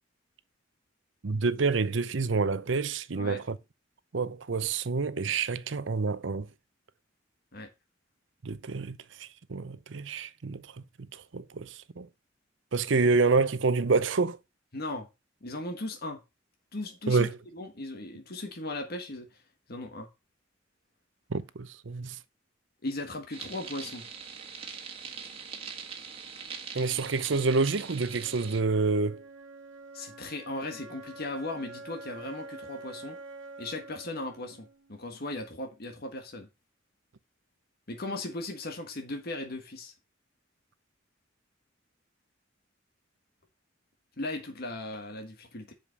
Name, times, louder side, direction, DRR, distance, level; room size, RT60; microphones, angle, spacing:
voice 1, 1.2-3.6 4.1-6.5 8.4-10.6 11.1-12.1 12.7-14.4 17.1-17.4 21.3-22.2 26.7-29.2, right 4 dB, 70° right, 0.7 m, -28 dB
voice 2, 14.7-15.1 15.4-16.2 16.7-17.3 17.5-19.4 19.7-20.1 22.8-24.0 29.9-33.2 33.6-36.5 37.9-39.9 44.2-45.7, left 2 dB, 55° left, 1.6 m, -37 dB
sound 1, 23.3-28.6, right 6 dB, 30° right, 1.6 m, -42 dB
Wind instrument woodwind instrument, 27.4-35.5, right 2 dB, 90° right, 1.6 m, -47 dB
7.4 x 5.1 x 7.0 m
head